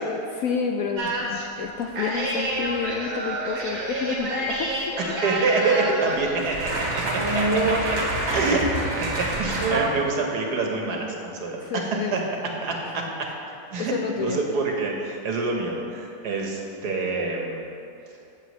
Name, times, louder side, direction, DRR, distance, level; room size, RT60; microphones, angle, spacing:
voice 1, 0.1-5.0 11.5-12.2 13.8-14.4, left 6 dB, 70° left, 2 dB, 0.8 m, -30 dB
sound 1, 1.0-1.4 2.0-9.8, right 1 dB, 40° right, 1.6 m, -27 dB
voice 2, 5.0-7.6 7.9-8.0 8.3-8.7 9.0-12.2 12.6-13.3 13.7-17.6, right 3 dB, 70° right, 0 dB, 1.6 m, -26 dB
15.5 x 6.8 x 3.1 m, 2.7 s
omnidirectional pair, 1.8 m